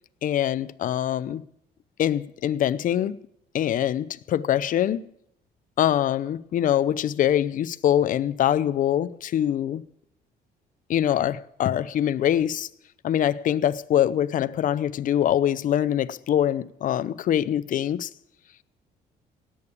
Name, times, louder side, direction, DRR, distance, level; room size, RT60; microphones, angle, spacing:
voice 1, 0.2-1.4 2.0-3.2 3.5-5.0 5.8-9.8 10.9-12.7 13.0-18.1, left 10 dB, 50° left, 0.6 m, -24 dB
17.5 x 8.6 x 8.5 m
cardioid pair, 110°, 17 cm